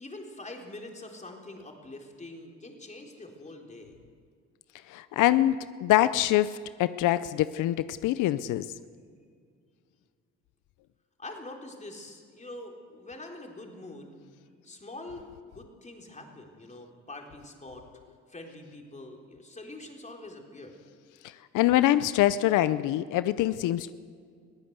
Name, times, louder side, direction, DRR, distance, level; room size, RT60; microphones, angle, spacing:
voice 1, 0.0-4.0 11.2-14.1 14.6-17.8 18.3-20.8, left 2 dB, 25° left, 1 dB, 3.8 m, -44 dB
voice 2, 4.9-8.7 21.5-23.9, left 14 dB, 90° left, 14 dB, 0.6 m, -24 dB
22.0 x 15.5 x 8.1 m, 2.1 s
cardioid pair, 90°, 30 cm